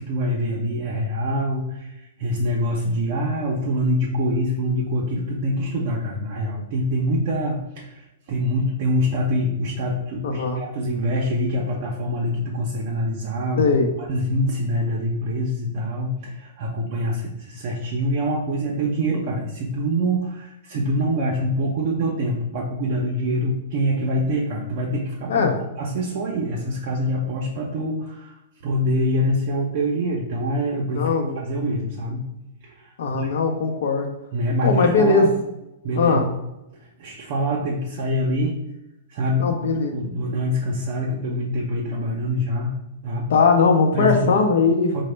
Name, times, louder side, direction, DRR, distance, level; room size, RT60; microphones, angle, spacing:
voice 1, 0.0-13.7 14.1-25.5 25.8-28.4 28.6-32.2 32.6-33.3 33.7-33.8 34.3-35.3 35.8-36.2 36.8-38.6 39.1-39.5 39.9-42.7 43.0-43.3 43.9-44.3 44.9-45.0, equal, 45° right, -3 dB, 0.5 m, -25 dB
voice 2, 10.2-10.6 13.6-13.9 25.3-25.5 30.9-31.4 33.0-34.1 34.6-35.3 36.0-36.2 39.4-40.0 43.3-44.9, left 4 dB, 70° left, 4 dB, 0.6 m, -19 dB
3.9 x 2.1 x 3.3 m, 0.92 s
hypercardioid pair, 160°, 0 cm